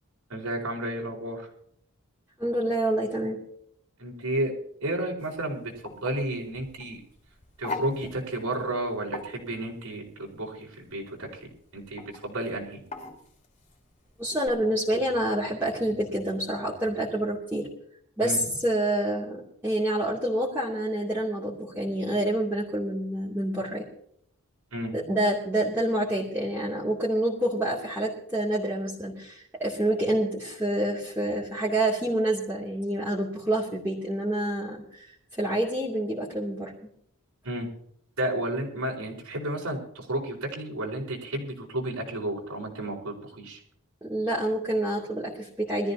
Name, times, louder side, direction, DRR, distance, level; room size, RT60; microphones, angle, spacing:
voice 1, 0.3-1.5 4.0-4.5 4.8-7.0 7.6-11.3 11.7-12.8 18.2-18.4 24.7-24.9 37.4-37.7 38.2-43.6, right 1 dB, 85° right, -1 dB, 4.6 m, -32 dB
voice 2, 2.4-3.4 14.2-17.7 18.2-23.9 24.9-35.1 35.3-36.7 44.0-45.9, right 1 dB, 10° right, -7 dB, 2.7 m, -27 dB
sound 1, 5.2-14.5, left 2 dB, 30° left, 3.0 m, -42 dB
23.0 x 14.0 x 2.8 m, 0.67 s
head